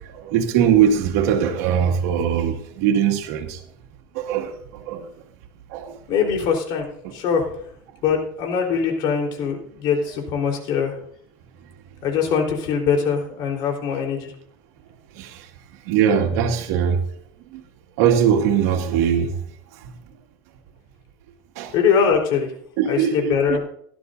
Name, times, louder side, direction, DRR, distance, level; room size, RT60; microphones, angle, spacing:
voice 1, 0.3-3.5 4.3-4.5 4.9-5.0 5.7-5.9 15.9-17.0 18.0-19.3 21.6-21.7 22.8-23.6, right 8 dB, 85° right, 2.1 m, -20 dB
voice 2, 6.1-6.9 7.1-7.5 8.0-10.9 12.0-14.3 21.7-22.5 22.9-23.6, left 6 dB, 65° left, 4.0 m, -22 dB
17.5 x 12.0 x 2.7 m
cardioid pair, 130°, 8 cm